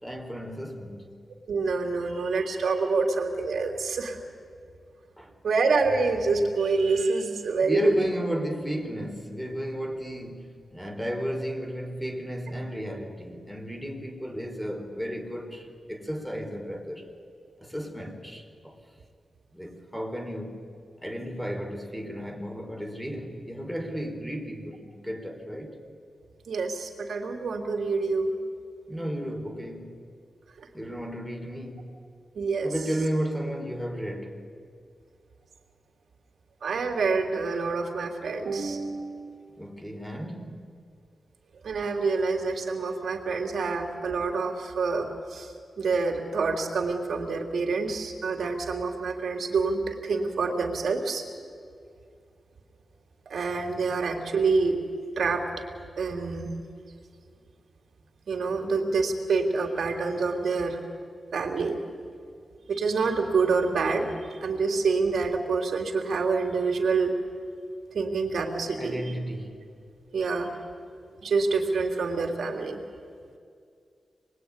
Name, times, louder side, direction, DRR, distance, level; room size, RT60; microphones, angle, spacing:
voice 1, 0.0-1.2 5.2-5.3 7.6-17.1 17.6-18.8 19.5-20.7 21.0-25.8 28.9-30.0 30.7-32.0 32.6-34.5 39.6-40.7 68.7-69.6, equal, ahead, 3.9 m, -34 dB
voice 2, 1.5-4.2 5.4-8.0 26.5-28.3 30.6-30.7 32.3-32.7 36.6-39.4 41.6-51.2 53.3-54.8 55.2-55.6 56.0-56.5 58.3-60.8 61.3-61.8 62.7-64.1 64.4-67.1 67.9-69.0 70.1-70.5 71.2-72.8, right 4 dB, 75° right, 3.2 m, -27 dB
27.0 x 21.5 x 9.8 m
wide cardioid pair, 105°, 0 cm